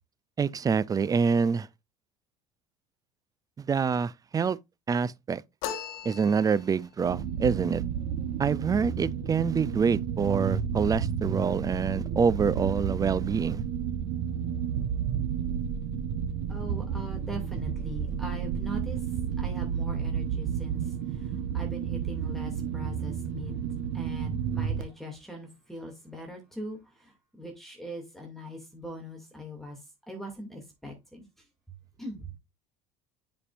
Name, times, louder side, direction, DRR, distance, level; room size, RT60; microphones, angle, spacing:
voice 1, 0.4-1.7 3.6-4.6 4.9-5.4 6.0-7.8 8.4-13.6, right 6 dB, 20° right, 0.5 m, -26 dB
sound 1, 5.6-6.9, left 8 dB, 75° left, 1.2 m, -37 dB
sound 2, 7.1-24.8, right 8 dB, 75° right, 1.1 m, -31 dB
voice 2, 16.5-23.6 23.9-29.8 30.1-31.3 32.0-32.3, equal, ahead, 2.4 m, -42 dB
9.9 x 5.3 x 2.5 m
supercardioid pair, 95°, 16 cm